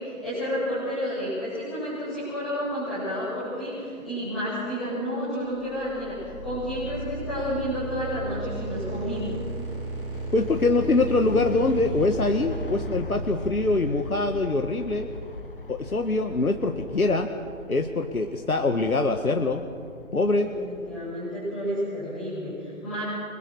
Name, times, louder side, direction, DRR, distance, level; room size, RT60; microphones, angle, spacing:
voice 1, 0.0-9.3 20.6-23.0, equal, ahead, -23 dB, 1.2 m, -31 dB
sound 1, 5.5-14.4, right 3 dB, 20° right, 6.0 m, -35 dB
sound 2, 5.6-21.1, left 2 dB, 40° left, 1.5 m, -41 dB
voice 2, 10.3-15.1 15.7-17.3 17.7-19.6 20.1-20.5, left 3 dB, 75° left, 5 dB, 1.8 m, -24 dB
29.0 x 22.0 x 6.6 m, 2.3 s
figure-of-eight pair, 165°, 43 cm